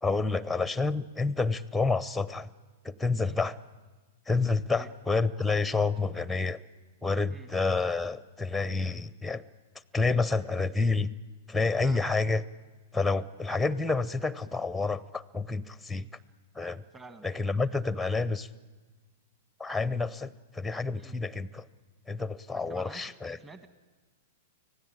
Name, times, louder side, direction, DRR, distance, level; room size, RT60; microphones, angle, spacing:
voice 1, 0.0-2.5 2.8-3.5 4.3-6.6 7.0-9.4 9.9-11.1 11.5-12.4 12.9-16.0 16.6-16.8 17.2-18.5 19.6-21.6 22.1-23.4, left 3 dB, 5° left, 18 dB, 0.7 m, -29 dB
voice 2, 16.9-17.2 21.0-21.1 22.5-23.7, right 2 dB, 15° right, 10 dB, 1.5 m, -48 dB
25.0 x 16.5 x 8.8 m, 1.3 s
figure-of-eight pair, 105°, 0 cm